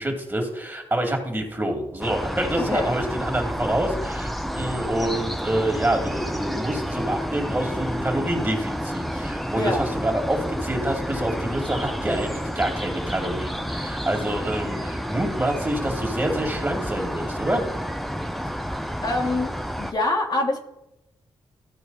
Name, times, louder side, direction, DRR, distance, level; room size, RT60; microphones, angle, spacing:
voice 1, 0.0-17.6, right 1 dB, 20° right, 2 dB, 2.4 m, -27 dB
sound 1, 2.0-19.9, equal, ahead, 0.7 m, -30 dB
voice 2, 2.6-3.0 9.5-9.9 19.0-19.5 19.8-20.6, left 2 dB, 45° left, 1 dB, 1.6 m, -25 dB
14.5 x 4.8 x 4.1 m, 0.88 s
cardioid pair, 60°, 10 cm